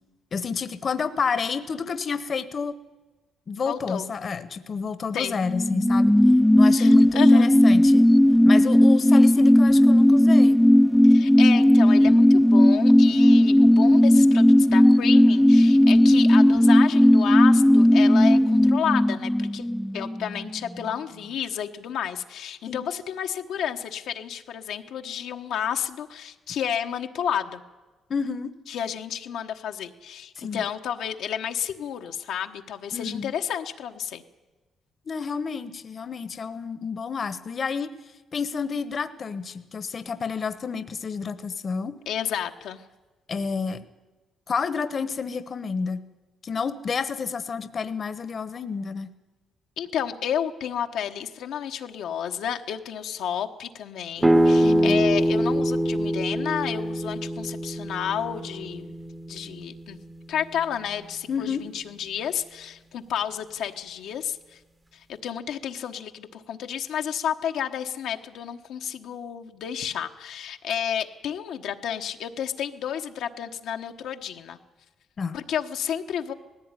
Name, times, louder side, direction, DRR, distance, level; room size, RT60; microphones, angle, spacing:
voice 1, 0.3-2.8 3.5-6.1 6.5-8.1 8.4-10.6 22.7-22.9 28.1-28.6 30.4-30.6 32.9-33.3 35.1-37.9 38.3-42.0 43.3-43.8 44.5-46.0 46.4-49.1 54.6-55.0 61.3-61.7 75.2-75.4, left 5 dB, 45° left, 13 dB, 1.1 m, -30 dB
voice 2, 3.6-4.1 5.1-5.3 6.7-7.5 11.0-19.6 19.9-27.6 28.7-34.2 42.1-42.8 49.8-58.9 59.3-60.0 60.3-64.6 64.9-74.6 75.3-76.3, left 9 dB, 80° left, 4 dB, 1.2 m, -31 dB
sound 1, 5.3-20.5 20.8-20.9, left 1 dB, 5° left, 0.6 m, -16 dB
sound 2, 54.2-59.8, right 1 dB, 15° right, 1.0 m, -24 dB
18.5 x 15.5 x 9.7 m, 1.2 s
cardioid pair, 90°, 0 cm